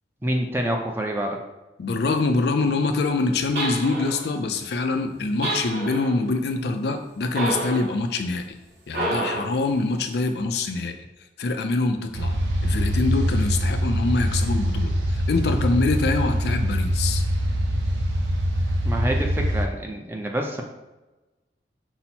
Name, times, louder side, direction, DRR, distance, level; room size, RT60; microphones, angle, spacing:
voice 1, 0.2-1.4 18.8-20.6, right 1 dB, 10° right, 2 dB, 0.4 m, -27 dB
voice 2, 1.8-8.6 8.9-10.9 11.4-12.4 12.6-17.2, left 3 dB, 65° left, 6 dB, 0.4 m, -24 dB
sound 1, 3.6-4.3 5.4-6.2 7.3-7.9 8.9-9.6, right 1 dB, 60° right, 1.3 m, -28 dB
sound 2, 12.1-19.7, equal, 85° right, 0.6 m, -24 dB
5.5 x 2.0 x 4.2 m, 1.1 s
head